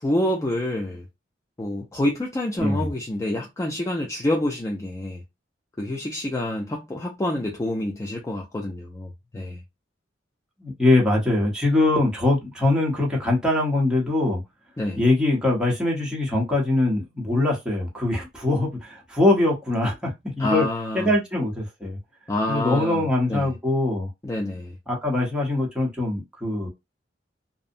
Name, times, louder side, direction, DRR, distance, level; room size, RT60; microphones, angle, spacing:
voice 1, 0.0-1.0 1.6-5.2 5.8-9.6 14.8-15.0 20.4-21.1 22.3-23.5 24.2-24.8, left 1 dB, 15° left, 0.4 m, -27 dB
voice 2, 10.6-14.4 15.0-20.6 20.9-22.0 22.5-24.1 24.9-26.7, left 2 dB, 5° right, 0.8 m, -22 dB
2.5 x 2.0 x 2.6 m
head